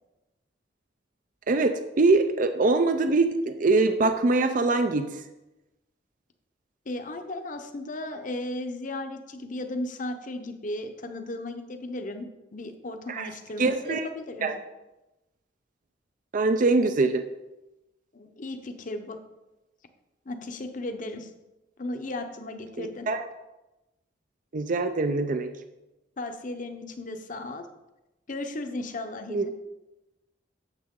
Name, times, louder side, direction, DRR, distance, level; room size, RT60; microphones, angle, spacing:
voice 1, 1.5-5.2 13.1-13.3 13.6-14.1 14.4-14.6 16.3-17.2 22.8-23.2 24.5-25.5 29.3-29.5, right 3 dB, 45° right, 8 dB, 0.5 m, -23 dB
voice 2, 6.9-14.5 18.1-19.2 20.3-21.3 21.8-23.1 26.2-27.7 28.3-29.5, left 2 dB, 45° left, 6 dB, 0.8 m, -35 dB
8.9 x 7.3 x 3.7 m, 1.0 s
head